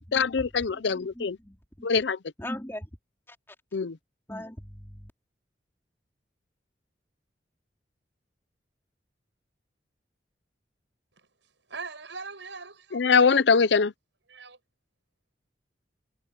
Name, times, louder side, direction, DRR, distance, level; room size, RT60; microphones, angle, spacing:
voice 1, 0.1-1.4 1.8-2.2 3.7-4.0 12.9-13.9, left 5 dB, 75° left, 0.6 m, -22 dB
voice 2, 0.8-1.9 2.4-2.9 3.3-3.4 4.3-5.1, left 1 dB, 15° left, 4.3 m, -40 dB
voice 3, 11.7-13.1 14.3-14.6, right 4 dB, 90° right, 7.4 m, -41 dB
head